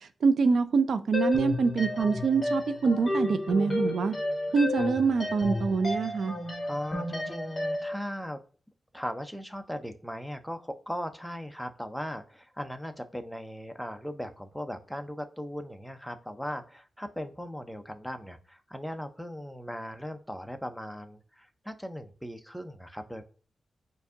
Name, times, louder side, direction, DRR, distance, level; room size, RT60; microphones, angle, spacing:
voice 1, 0.2-4.1 4.5-6.4, right 4 dB, 75° right, 0.5 m, -25 dB
sound 1, 1.1-8.0, left 2 dB, 25° left, 1.6 m, -32 dB
voice 2, 6.7-8.4 8.9-23.2, equal, ahead, 0.5 m, -38 dB
4.5 x 2.6 x 3.6 m
wide cardioid pair, 140°, 0 cm